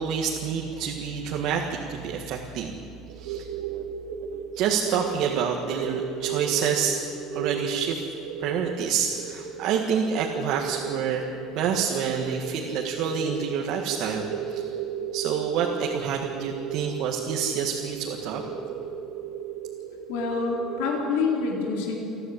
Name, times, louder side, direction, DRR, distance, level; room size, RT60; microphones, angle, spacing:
voice 1, 0.0-2.7 3.2-3.5 4.5-7.0 7.3-8.0 8.4-11.2 11.5-14.7 15.1-18.4, right 7 dB, 55° right, 0 dB, 1.8 m, -28 dB
sound 1, 3.1-21.4, right 7 dB, 80° right, 2.2 m, -35 dB
voice 2, 20.1-22.2, left 4 dB, 85° left, -1 dB, 3.8 m, -27 dB
30.0 x 11.0 x 8.7 m, 2.8 s
cardioid pair, 165°, 0 cm